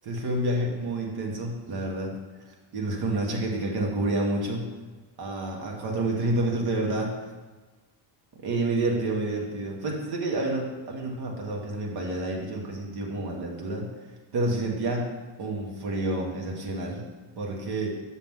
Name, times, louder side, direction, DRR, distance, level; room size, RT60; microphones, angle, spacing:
voice 1, 0.0-2.1 2.7-4.6 5.2-7.1 8.4-13.9 14.3-15.1 15.4-17.0 17.4-18.0, right 2 dB, 50° right, 0 dB, 1.8 m, -29 dB
7.6 x 6.5 x 3.8 m, 1.3 s
cardioid pair, 130°, 47 cm